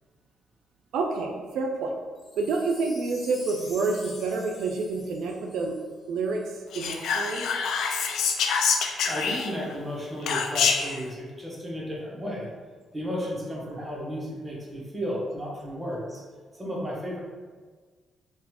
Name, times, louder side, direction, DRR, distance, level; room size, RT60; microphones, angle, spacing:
voice 1, 0.9-1.9 2.4-5.8 6.1-7.5, right 3 dB, 80° right, 1 dB, 0.3 m, -28 dB
Wind chime, 2.2-6.5 7.1-7.2, left 3 dB, 40° left, 0.6 m, -47 dB
Whispering, 6.7-9.7 10.3-11.0, left 6 dB, 75° left, 0.3 m, -26 dB
voice 2, 9.0-12.5 12.9-16.2 16.5-17.2, equal, 15° right, -5 dB, 1.1 m, -33 dB
3.9 x 2.3 x 2.9 m, 1.5 s
cardioid pair, 90°, 0 cm